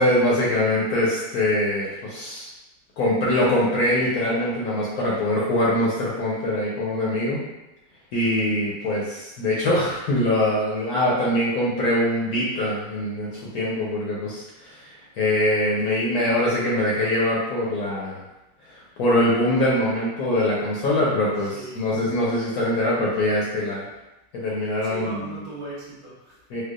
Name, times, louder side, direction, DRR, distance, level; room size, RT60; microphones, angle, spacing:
voice 1, 0.0-2.5 3.0-7.4 8.1-18.2 18.7-23.8 24.3-25.2 26.5-26.6, left 1 dB, 65° left, -5 dB, 1.0 m, -23 dB
voice 2, 21.4-22.0 24.8-26.4, right 1 dB, 60° right, -8 dB, 1.6 m, -38 dB
4.5 x 2.4 x 2.4 m, 0.98 s
omnidirectional pair, 2.0 m